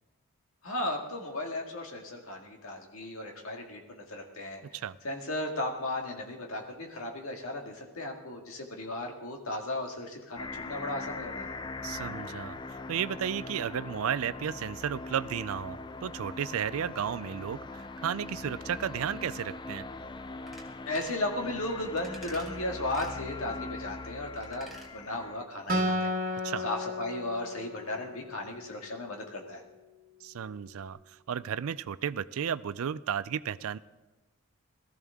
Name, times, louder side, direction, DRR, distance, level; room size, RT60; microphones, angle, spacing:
voice 1, 0.6-4.6 5.0-11.5 20.9-24.7 24.9-29.6, left 1 dB, 70° left, 2 dB, 2.0 m, -35 dB
sound 1, 10.4-25.4, left 3 dB, 20° left, 0.3 m, -41 dB
voice 2, 11.8-12.6 12.9-19.9 26.4-26.6 30.2-31.0 31.3-33.8, right 8 dB, 70° right, 16 dB, 0.4 m, -33 dB
sound 2, 20.5-20.7 20.9-21.2 22.0-22.5 22.9-23.2 24.4-24.9 25.2-25.3, right 1 dB, ahead, 1.6 m, -49 dB
Acoustic guitar, 25.7-29.1, left 1 dB, 40° right, 1.5 m, -33 dB
18.0 x 14.0 x 3.6 m, 1.2 s
head